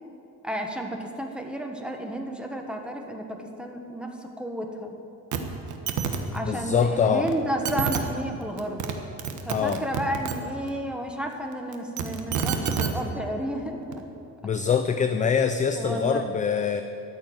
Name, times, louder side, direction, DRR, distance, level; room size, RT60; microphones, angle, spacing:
voice 1, 0.4-4.9 6.3-8.9 9.4-14.0 15.7-16.3, right 1 dB, 5° right, 3 dB, 1.3 m, -32 dB
sound 1, 5.3-5.4 5.7-6.2 7.3-7.4 7.6-8.0 8.6-8.9 9.2-10.3 11.7-12.9 13.9-14.0, right 8 dB, 60° right, 1.4 m, -27 dB
voice 2, 6.4-7.3 9.5-9.8 14.4-16.8, left 7 dB, 20° left, 9 dB, 0.4 m, -24 dB
13.5 x 7.6 x 9.3 m, 2.9 s
cardioid pair, 140°, 34 cm